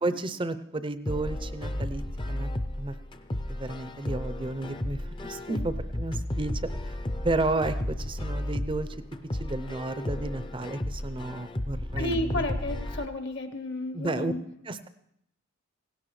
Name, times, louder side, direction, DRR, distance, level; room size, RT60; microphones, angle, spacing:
voice 1, 0.0-2.0 2.3-2.5 2.8-2.9 3.5-6.5 6.8-7.0 7.2-8.9 9.4-12.4 13.9-14.3 14.7-14.9, right 2 dB, 25° right, 12 dB, 0.5 m, -32 dB
sound 1, 1.1-13.1, left 1 dB, 20° left, 0.5 m, -33 dB
voice 2, 11.9-14.5, left 1 dB, 50° left, 8 dB, 1.0 m, -32 dB
17.5 x 16.5 x 3.2 m, 0.78 s
head